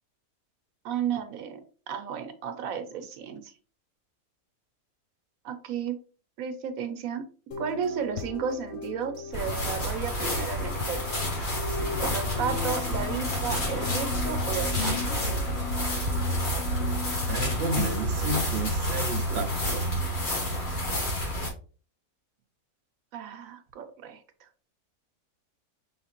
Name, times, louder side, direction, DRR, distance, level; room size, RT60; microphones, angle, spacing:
voice 1, 0.8-3.5 5.4-6.0 6.4-7.2 7.6-11.0 12.0-15.0 23.1-24.5, right 7 dB, 75° right, 1.1 m, -33 dB
sound 1, 7.5-18.1, left 7 dB, 60° left, 0.8 m, -37 dB
sound 2, 9.3-21.5, equal, 90° left, 2.6 m, -29 dB
voice 2, 17.3-19.9, right 2 dB, 60° right, 0.7 m, -31 dB
5.6 x 3.2 x 2.9 m
omnidirectional pair, 1.5 m